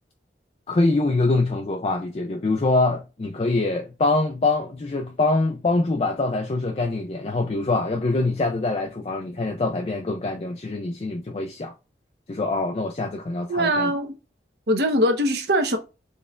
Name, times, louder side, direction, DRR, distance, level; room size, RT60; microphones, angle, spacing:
voice 1, 0.7-11.7 12.3-13.9, left 2 dB, 35° left, 0.4 m, -24 dB
voice 2, 13.5-14.1 14.7-15.8, equal, 65° right, 0.9 m, -21 dB
4.2 x 3.3 x 2.3 m
head